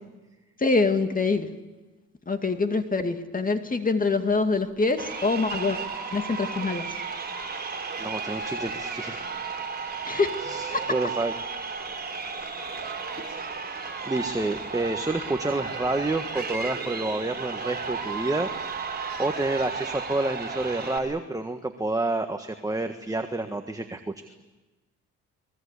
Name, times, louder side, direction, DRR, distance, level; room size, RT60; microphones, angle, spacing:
voice 1, 0.6-1.5 2.3-5.8 6.1-6.8 10.1-10.4 10.7-10.9, left 3 dB, 30° left, 7 dB, 2.4 m, -25 dB
Crowd, 4.9-21.0, right 5 dB, 30° right, 4.8 m, -34 dB
voice 2, 8.0-9.2 10.4-11.3 13.7-18.5 19.2-24.1, right 2 dB, 10° right, 6 dB, 1.6 m, -29 dB
24.5 x 21.5 x 8.4 m, 1.2 s
cardioid pair, 90°, 30 cm